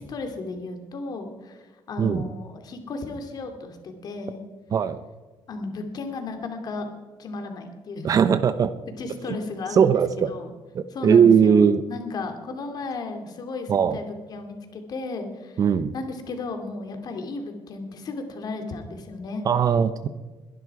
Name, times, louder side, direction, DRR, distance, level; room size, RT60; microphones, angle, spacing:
voice 1, 0.0-4.4 5.5-6.9 7.2-8.1 9.0-9.9 10.3-10.5 10.9-15.6 15.9-19.4, left 3 dB, 45° left, 5 dB, 2.6 m, -34 dB
voice 2, 8.0-8.7 9.3-9.4 9.7-10.3 10.7-11.8 13.7-14.0 15.6-15.9 19.4-20.1, right 7 dB, 40° right, 12 dB, 0.7 m, -19 dB
22.0 x 11.0 x 4.8 m, 1.3 s
cardioid pair, 135°, 9 cm